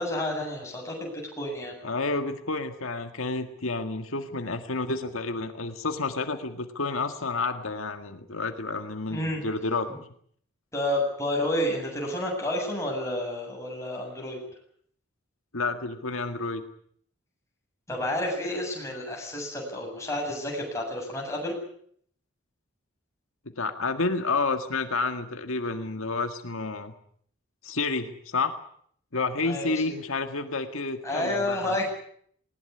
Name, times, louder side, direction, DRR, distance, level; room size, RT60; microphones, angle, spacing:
voice 1, 0.0-1.8 9.1-9.4 9.9-10.0 10.7-14.4 17.9-21.6 29.4-30.0 31.0-31.9, left 1 dB, 15° left, -1 dB, 7.8 m, -30 dB
voice 2, 1.8-9.9 15.5-16.6 23.6-26.9 27.6-28.6 29.1-31.7, left 3 dB, 80° left, 6 dB, 1.9 m, -30 dB
20.0 x 19.5 x 9.7 m, 0.63 s
head